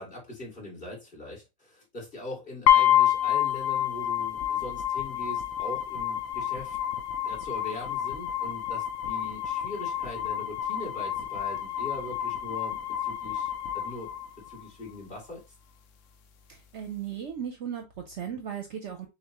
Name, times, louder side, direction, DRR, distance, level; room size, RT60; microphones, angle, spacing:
voice 1, 0.0-6.8 7.2-14.1 14.5-15.4, left 2 dB, 35° left, 2.4 m, -41 dB
sound 1, 2.7-14.7, left 11 dB, 65° left, 0.9 m, -28 dB
voice 2, 16.5-19.1, right 8 dB, 60° right, 0.8 m, -36 dB
6.6 x 2.3 x 2.8 m
omnidirectional pair, 1.5 m